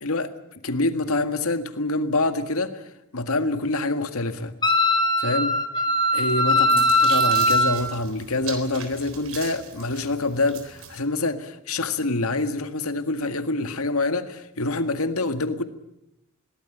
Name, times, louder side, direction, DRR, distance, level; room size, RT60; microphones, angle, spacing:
voice 1, 0.0-0.3 0.6-2.8 3.1-4.5 5.2-5.6 6.1-15.6, left 2 dB, 80° left, 9 dB, 1.8 m, -26 dB
Wind instrument woodwind instrument, 4.6-7.8, left 1 dB, 20° left, 1.8 m, -20 dB
sound 1, 6.3-11.0, right 7 dB, 75° right, 3.9 m, -39 dB
22.0 x 18.5 x 9.1 m, 0.84 s
head